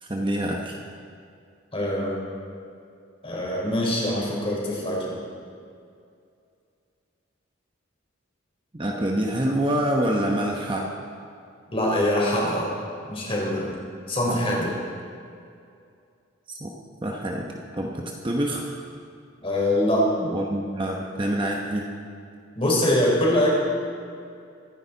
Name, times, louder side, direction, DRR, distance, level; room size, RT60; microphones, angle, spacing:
voice 1, 0.0-0.8 8.7-11.0 14.3-14.4 16.6-16.7 17.0-18.8 20.2-21.9, right 1 dB, 25° right, 0 dB, 1.0 m, -26 dB
voice 2, 1.7-2.2 3.2-5.1 11.7-12.7 13.1-13.7 14.1-14.7 19.4-20.1 22.6-23.6, left 1 dB, 30° left, -3 dB, 3.7 m, -23 dB
24.5 x 10.5 x 4.0 m, 2.4 s
head